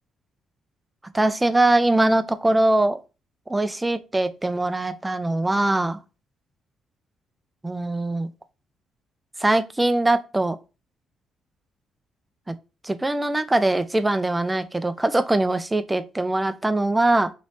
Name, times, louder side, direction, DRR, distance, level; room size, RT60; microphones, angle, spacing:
voice 1, 1.1-3.0 3.5-6.0 7.6-8.3 9.4-10.6 12.5-12.6 12.8-17.3, right 2 dB, 15° right, 0.4 m, -22 dB
3.1 x 3.1 x 2.7 m
cardioid pair, 90°, 0 cm